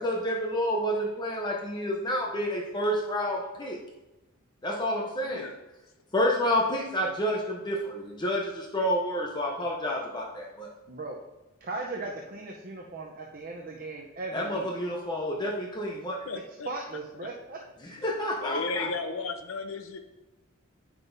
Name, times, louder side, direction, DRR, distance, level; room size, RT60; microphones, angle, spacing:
voice 1, 0.0-3.8 4.6-5.5 6.1-10.7 14.3-16.3 17.8-18.9, equal, 20° left, -1 dB, 0.7 m, -29 dB
voice 2, 5.2-5.6 16.3-17.3 18.0-18.1 18.4-20.0, left 3 dB, 70° left, 7 dB, 0.7 m, -35 dB
voice 3, 10.9-11.2 11.6-14.7 16.6-17.6, right 3 dB, 45° right, -1 dB, 0.7 m, -37 dB
9.0 x 5.9 x 2.6 m, 1.0 s
head